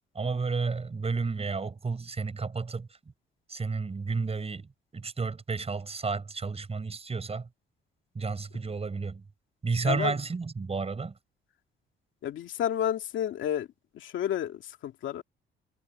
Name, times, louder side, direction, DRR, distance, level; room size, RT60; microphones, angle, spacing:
voice 1, 0.1-3.0 3.5-7.5 8.1-9.2 9.6-11.2, right 4 dB, 30° right, 7.0 m, -32 dB
voice 2, 12.2-13.7 13.9-15.2, left 10 dB, 75° left, 2.3 m, -31 dB
cardioid pair, 90°, 20 cm